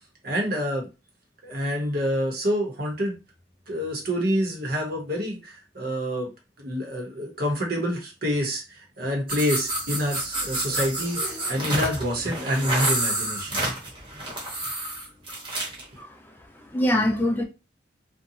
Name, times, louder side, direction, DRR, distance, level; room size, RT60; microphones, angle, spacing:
voice 1, 0.2-0.9 1.4-3.1 3.7-6.3 6.6-13.6, equal, 55° right, 1.0 m, -27 dB
sound 1, 9.3-15.8, right 1 dB, 30° right, 1.1 m, -29 dB
voice 2, 16.0-17.4, left 1 dB, 10° left, 0.4 m, -25 dB
2.6 x 2.3 x 2.8 m
head